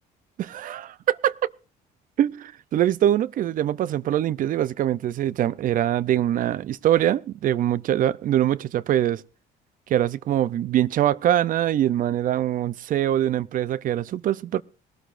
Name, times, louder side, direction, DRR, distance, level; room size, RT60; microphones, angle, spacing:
voice 1, 0.4-1.5 2.2-9.2 9.9-14.6, right 11 dB, 55° right, 0.5 m, -23 dB
20.5 x 13.0 x 2.5 m
cardioid pair, 110°, 17 cm